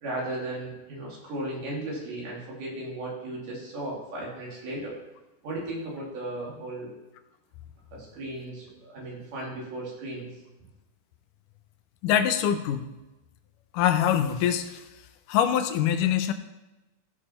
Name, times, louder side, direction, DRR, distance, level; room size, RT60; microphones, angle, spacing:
voice 1, 0.0-4.9 5.4-6.9 7.9-10.3, right 1 dB, 85° right, -4 dB, 4.4 m, -35 dB
voice 2, 12.0-12.9 13.7-14.8 15.3-16.3, left 10 dB, 90° left, 9 dB, 2.3 m, -24 dB
14.5 x 6.4 x 4.4 m, 1.0 s
omnidirectional pair, 3.6 m